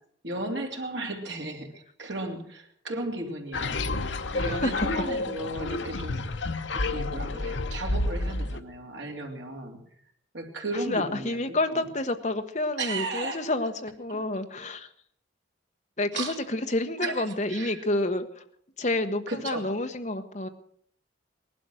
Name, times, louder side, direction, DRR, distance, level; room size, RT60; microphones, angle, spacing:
voice 1, 0.2-3.8 4.3-6.3 6.7-9.8 10.3-11.4 11.7-11.8 12.8-13.4 14.1-14.2 16.1-16.4 17.0-17.8 19.3-19.7, right 2 dB, 70° right, 2 dB, 2.9 m, -35 dB
sound 1, 3.5-8.6, left 2 dB, 75° left, 0.9 m, -30 dB
voice 2, 4.4-4.9 10.7-14.9 16.0-18.4 18.8-20.5, left 2 dB, 40° left, 6 dB, 1.2 m, -29 dB
18.5 x 12.0 x 6.4 m, 0.64 s
head